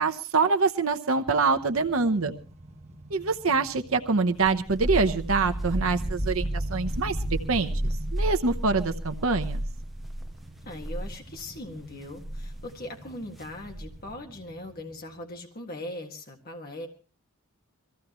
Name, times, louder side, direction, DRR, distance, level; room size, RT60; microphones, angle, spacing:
voice 1, 0.0-2.3 3.1-9.6, right 4 dB, 65° right, 7 dB, 0.9 m, -25 dB
sound 1, 1.6-15.4, right 1 dB, 30° right, 1.2 m, -45 dB
sound 2, 4.4-10.3 10.7-11.1 12.2-12.5 13.7-14.1, right 1 dB, ahead, 0.7 m, -31 dB
voice 2, 10.6-16.9, left 1 dB, 45° left, 2 dB, 1.8 m, -40 dB
23.0 x 15.5 x 3.0 m, 0.32 s
head